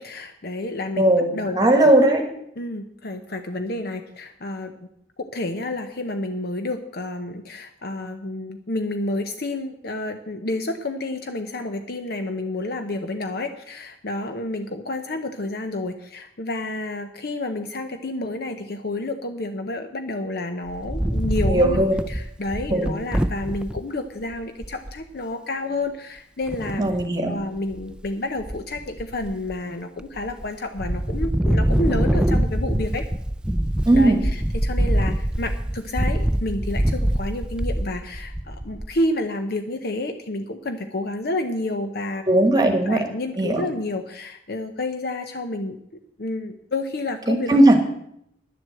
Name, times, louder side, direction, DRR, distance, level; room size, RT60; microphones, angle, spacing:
voice 1, 0.0-1.7 2.6-4.7 5.2-26.8 27.3-33.0 33.9-45.8 46.2-47.6, left 2 dB, 60° left, 7 dB, 0.8 m, -30 dB
voice 2, 0.9-2.2 21.5-22.0 22.7-22.9 26.8-27.4 33.8-34.2 42.3-43.0 43.4-43.6 47.3-47.8, right 1 dB, 20° right, 5 dB, 1.4 m, -18 dB
Wind, 20.7-23.8 24.3-24.4 24.6-25.0 26.5-27.1 27.6-28.1 28.4-29.5 30.0-30.5 30.8-39.0, right 1 dB, 5° right, 0.4 m, -24 dB
11.0 x 7.8 x 7.7 m, 0.75 s
head